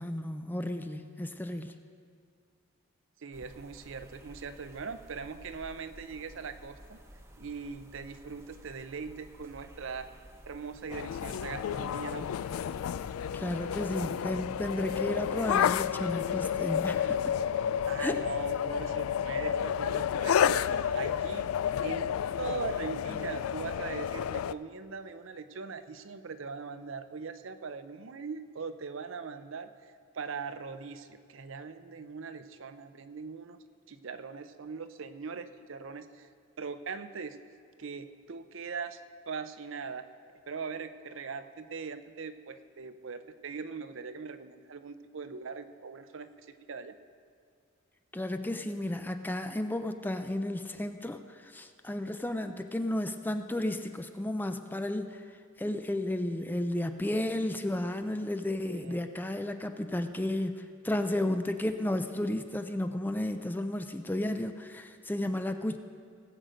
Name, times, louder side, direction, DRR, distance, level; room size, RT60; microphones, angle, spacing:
voice 1, 0.0-1.7 13.3-17.3 18.0-18.2 48.1-55.2 55.6-65.8, left 1 dB, 10° left, 8 dB, 0.4 m, -33 dB
voice 2, 3.2-7.0 7.4-10.1 10.5-12.3 17.9-21.5 21.8-33.6 33.9-36.3 36.6-37.4 37.8-39.0 39.3-40.0 40.5-46.9 58.7-59.0, right 5 dB, 65° right, 10 dB, 0.6 m, -41 dB
sound 1, 3.3-13.8, equal, 10° right, 0.9 m, -53 dB
sound 2, 10.9-24.5, left 8 dB, 85° left, 0.3 m, -31 dB
18.0 x 7.9 x 5.1 m, 2.2 s
head